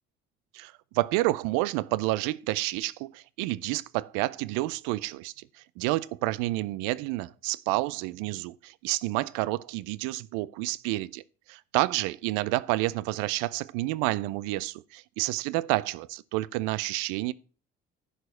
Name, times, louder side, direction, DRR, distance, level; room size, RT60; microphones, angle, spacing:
voice 1, 0.5-5.5 5.8-11.2 11.7-17.3, right 19 dB, 80° right, 0.5 m, -29 dB
11.0 x 4.8 x 6.0 m
hypercardioid pair, 60°, 31 cm